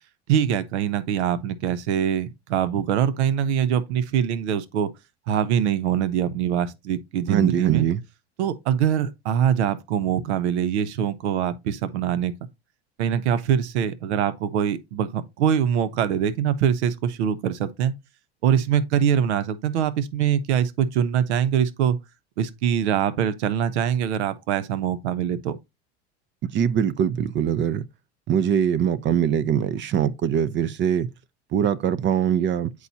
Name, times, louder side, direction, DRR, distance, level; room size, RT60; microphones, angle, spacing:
voice 1, 0.3-4.9 5.3-7.8 8.4-12.3 13.0-17.9 18.4-22.0 22.4-25.6, right 9 dB, 85° right, 0.7 m, -23 dB
voice 2, 7.3-8.0 26.4-27.8 28.3-31.1 31.5-32.7, right 9 dB, 35° right, 0.5 m, -22 dB
8.2 x 4.7 x 2.7 m
supercardioid pair, 100°, 33 cm